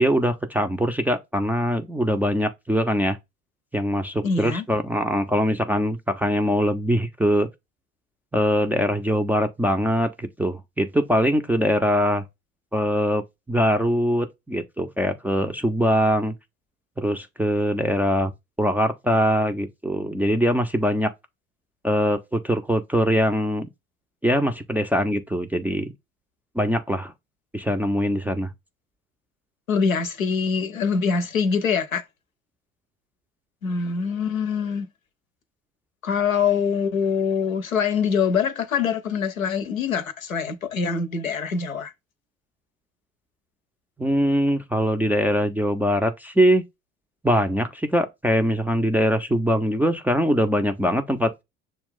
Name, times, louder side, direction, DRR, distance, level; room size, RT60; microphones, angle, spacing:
voice 1, 0.0-3.2 3.7-7.5 8.3-12.2 12.7-13.2 13.5-16.3 17.0-18.3 18.6-21.1 21.8-23.7 24.2-25.9 26.6-27.1 27.5-28.5 44.0-46.6 47.2-51.3, equal, 5° right, 0.4 m, -22 dB
voice 2, 4.2-4.6 29.7-32.0 33.6-34.9 36.0-41.9, left 6 dB, 90° left, 0.6 m, -24 dB
6.4 x 2.3 x 3.6 m
figure-of-eight pair, 60°, 40 cm